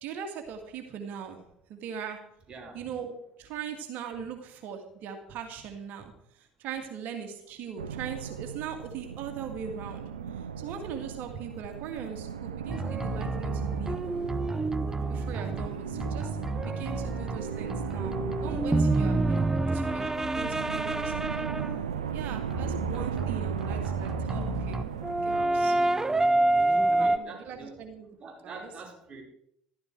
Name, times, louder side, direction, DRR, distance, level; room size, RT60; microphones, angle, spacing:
voice 1, 0.0-1.4 1.7-2.2 2.7-3.1 3.4-14.0 15.1-19.4 19.7-21.5 22.1-24.8 25.1-25.8 26.3-28.1 28.4-28.7, right 7 dB, 60° right, 5 dB, 2.2 m, -40 dB
voice 2, 2.5-2.9 6.8-6.9 26.9-27.8 28.2-29.2, right 3 dB, 35° right, -1 dB, 4.7 m, -45 dB
sound 1, 7.8-26.2, right 7 dB, 85° right, 0.7 m, -37 dB
sound 2, 12.7-21.8 22.5-27.2, right 2 dB, 15° right, 0.6 m, -28 dB
14.0 x 13.0 x 4.7 m, 0.71 s
hypercardioid pair, 65°, 3 cm